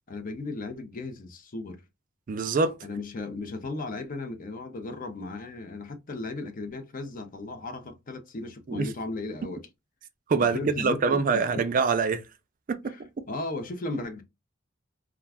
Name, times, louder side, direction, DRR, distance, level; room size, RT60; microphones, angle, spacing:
voice 1, 0.1-1.8 2.8-9.6 10.4-11.4 12.9-14.2, left 2 dB, 40° left, 0.5 m, -36 dB
voice 2, 2.3-2.7 8.7-8.9 10.3-12.2 12.7-13.2, right 4 dB, 40° right, 0.4 m, -25 dB
2.3 x 2.2 x 3.3 m
head